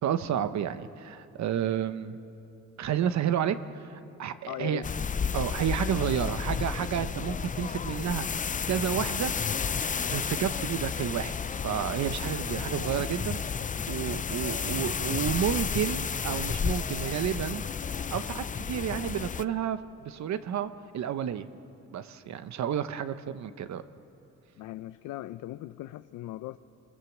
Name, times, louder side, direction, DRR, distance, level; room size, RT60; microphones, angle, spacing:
voice 1, 0.0-2.2 2.8-4.8 5.3-9.3 10.1-11.4 11.6-13.4 13.9-17.6 18.1-21.5 21.9-23.8, right 9 dB, 65° right, 11 dB, 1.0 m, -31 dB
voice 2, 4.5-4.9 24.6-26.6, left 15 dB, 85° left, 11 dB, 0.6 m, -39 dB
sound 1, 4.8-19.4, left 6 dB, 25° left, 0.5 m, -32 dB
27.5 x 22.5 x 7.3 m, 2.8 s
cardioid pair, 90°, 30 cm